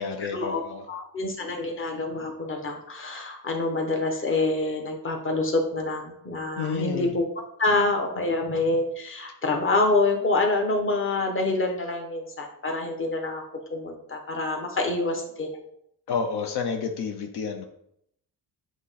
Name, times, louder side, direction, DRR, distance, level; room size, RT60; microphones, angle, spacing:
voice 1, 0.0-0.8 6.6-7.1 16.1-17.6, left 5 dB, 70° left, 4 dB, 0.7 m, -30 dB
voice 2, 0.9-7.2 7.6-13.4 13.7-15.6, left 2 dB, 30° left, 2 dB, 1.1 m, -26 dB
7.7 x 3.1 x 4.1 m, 0.75 s
cardioid pair, 115°, 40 cm